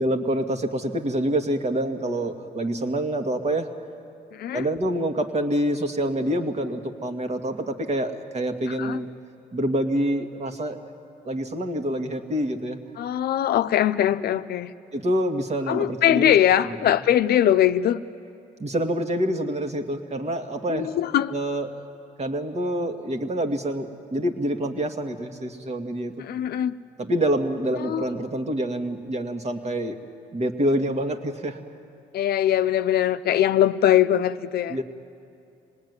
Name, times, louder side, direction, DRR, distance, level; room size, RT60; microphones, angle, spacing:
voice 1, 0.0-3.7 4.5-9.1 9.5-10.8 11.3-12.8 14.9-16.3 18.6-20.9 21.3-21.7 22.2-26.1 27.0-30.0 30.3-31.6 34.7-34.8, right 1 dB, 40° right, 2.1 m, -26 dB
voice 2, 4.3-4.7 8.7-9.0 13.0-14.7 15.7-18.0 20.7-21.3 26.2-26.8 27.8-28.1 32.1-34.8, left 11 dB, 65° left, 0.7 m, -21 dB
25.0 x 19.0 x 9.6 m
supercardioid pair, 75°, 17 cm